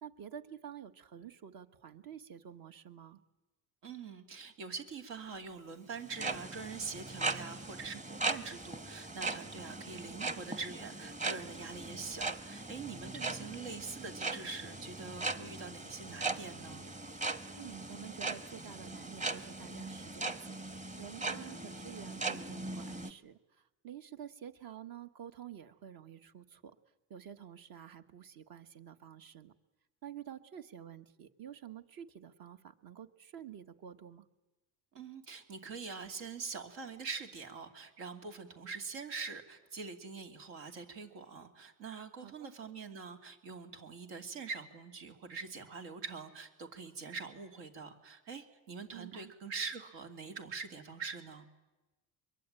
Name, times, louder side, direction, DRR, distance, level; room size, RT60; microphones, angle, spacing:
voice 1, 0.0-3.2 13.1-13.2 17.5-20.6 21.0-26.7 27.1-29.5 30.0-34.2 42.2-42.5 48.9-49.3, right 9 dB, 55° right, 9 dB, 1.6 m, -49 dB
voice 2, 3.8-16.9 34.9-51.5, right 4 dB, 80° right, 5 dB, 3.0 m, -44 dB
sound 1, 6.0-23.1, right 3 dB, 15° right, 1.2 m, -39 dB
23.5 x 22.5 x 9.0 m, 1.1 s
supercardioid pair, 95°, 43 cm